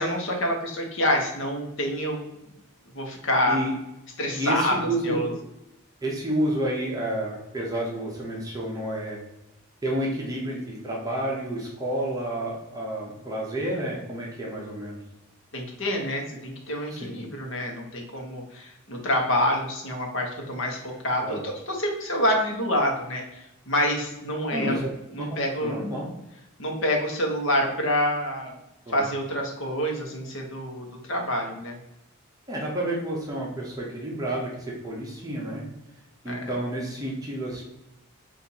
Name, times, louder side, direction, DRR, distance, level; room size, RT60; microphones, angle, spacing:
voice 1, 0.0-2.2 2.9-3.6 4.2-4.8 5.0-5.3 15.5-24.8 25.1-25.8 26.6-28.6 28.9-31.8 36.3-36.5, left 1 dB, 60° left, 1 dB, 1.0 m, -27 dB
voice 2, 4.3-5.2 6.0-9.2 9.8-15.0 16.9-17.2 21.2-21.4 24.5-24.9 25.6-26.1 28.9-29.1 32.5-35.6 36.2-37.6, right 1 dB, 15° right, -3 dB, 0.7 m, -30 dB
4.2 x 2.5 x 4.0 m, 0.93 s
head